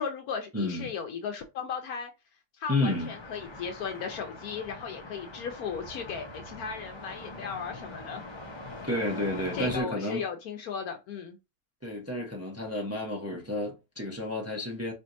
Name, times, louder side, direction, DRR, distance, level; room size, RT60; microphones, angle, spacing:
voice 1, 0.0-2.1 2.6-8.2 9.5-11.4, left 6 dB, 75° left, 1.1 m, -36 dB
voice 2, 0.5-0.9 2.7-3.1 8.8-10.2 11.8-14.9, left 2 dB, 15° right, 0.5 m, -31 dB
sound 1, 2.9-9.8, left 2 dB, 25° left, 0.6 m, -43 dB
4.5 x 2.8 x 2.6 m
omnidirectional pair, 1.6 m